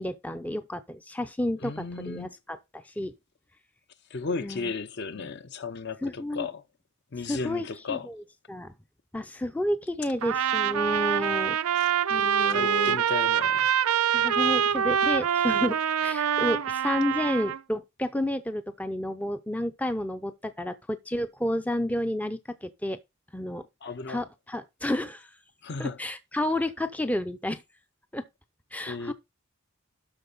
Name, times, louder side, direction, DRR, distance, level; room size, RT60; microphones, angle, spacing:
voice 1, 0.0-3.1 4.4-4.7 5.2-5.3 6.0-6.5 7.3-8.7 9.1-11.6 12.1-13.0 14.1-23.0 23.3-23.6 24.1-25.3 25.8-27.6 28.1-28.2 28.7-29.1, left 1 dB, 5° left, 0.4 m, -31 dB
voice 2, 1.6-2.3 4.1-6.6 7.1-8.1 11.7-11.9 12.5-13.7 23.8-24.2 25.6-26.0 28.8-29.1, left 4 dB, 50° left, 0.6 m, -35 dB
Trumpet, 10.2-17.6, right 8 dB, 80° right, 0.5 m, -25 dB
12.5 x 4.2 x 3.9 m
head